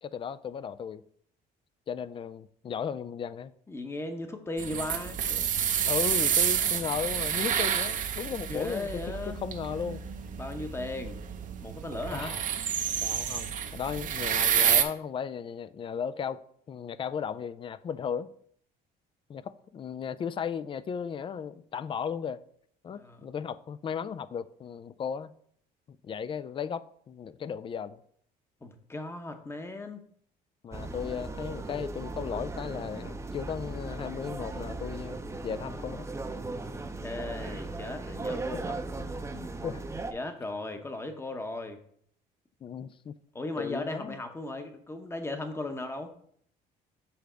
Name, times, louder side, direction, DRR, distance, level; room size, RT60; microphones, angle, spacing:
voice 1, 0.0-1.0 1.9-3.5 5.8-10.0 12.1-12.4 13.0-16.4 16.7-18.3 19.3-22.4 22.8-25.3 25.9-28.0 30.6-36.1 39.3-39.8 42.6-43.2 43.6-44.2, left 7 dB, 30° left, 0.3 m, -36 dB
voice 2, 3.7-5.5 8.4-9.4 10.4-11.2 11.6-12.3 12.9-13.0 22.9-23.2 28.6-30.0 37.0-38.8 40.1-41.8 43.3-46.1, left 2 dB, 15° left, 0.9 m, -37 dB
sound 1, 4.6-14.8, right 8 dB, 50° right, 0.7 m, -29 dB
sound 2, 30.7-40.1, right 2 dB, 15° right, 0.6 m, -37 dB
6.9 x 3.4 x 5.0 m
cardioid pair, 110°, 17 cm